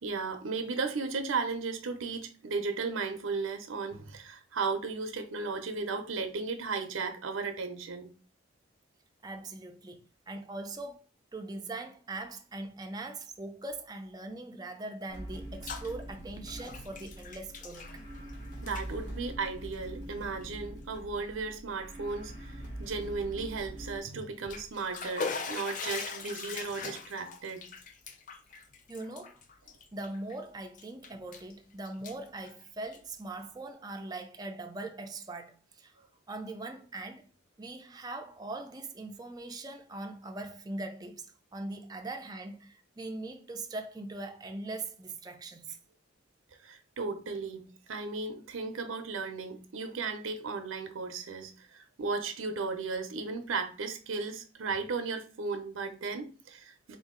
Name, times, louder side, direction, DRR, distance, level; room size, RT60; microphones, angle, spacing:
voice 1, 0.0-8.1 18.6-27.6 46.6-57.0, right 4 dB, 85° right, 0.6 m, -35 dB
voice 2, 9.2-10.9 11.3-18.0 28.9-29.4 29.9-37.3 37.6-45.8, right 2 dB, 20° right, 0.4 m, -41 dB
sound 1, 15.1-24.0, right 1 dB, 60° left, 1.5 m, -43 dB
Bathtub (filling or washing), 15.3-15.9 16.2-18.3 18.6-18.9 19.6-19.8 20.4-20.5 20.9-21.0 24.2-30.3 30.7-31.5 31.8-33.2, left 4 dB, 40° left, 0.5 m, -41 dB
3.9 x 2.7 x 3.7 m
head